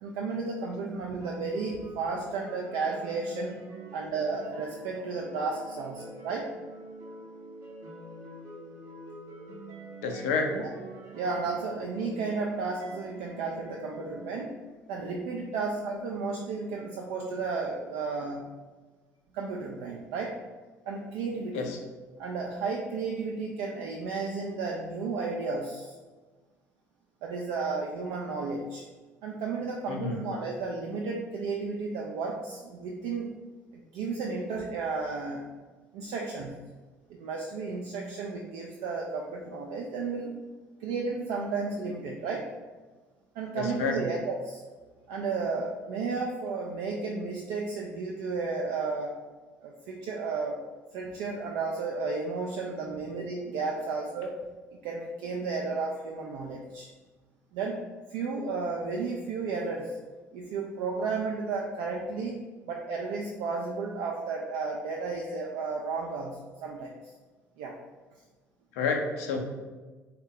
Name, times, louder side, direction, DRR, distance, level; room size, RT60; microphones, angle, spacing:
voice 1, 0.0-3.6 3.9-6.5 10.5-10.7 11.1-14.5 14.9-18.4 19.3-20.3 20.9-21.7 22.2-26.0 27.2-28.8 29.2-33.3 33.9-35.5 35.9-36.6 37.1-40.3 40.8-42.5 43.4-44.6 45.1-49.2 49.6-50.6 50.9-54.3 54.8-56.9 57.5-57.8 58.1-60.0 60.3-62.4 62.6-67.1 67.6-67.8, right 4 dB, 60° right, -1 dB, 0.3 m, -33 dB
sound 1, 1.2-14.4, right 1 dB, 45° right, 0.7 m, -46 dB
voice 2, 10.0-10.6 21.5-21.8 29.9-30.2 43.5-44.0 68.7-69.4, left 4 dB, 65° left, 3 dB, 0.4 m, -29 dB
3.4 x 2.1 x 3.7 m, 1.3 s
figure-of-eight pair, 55°, 8 cm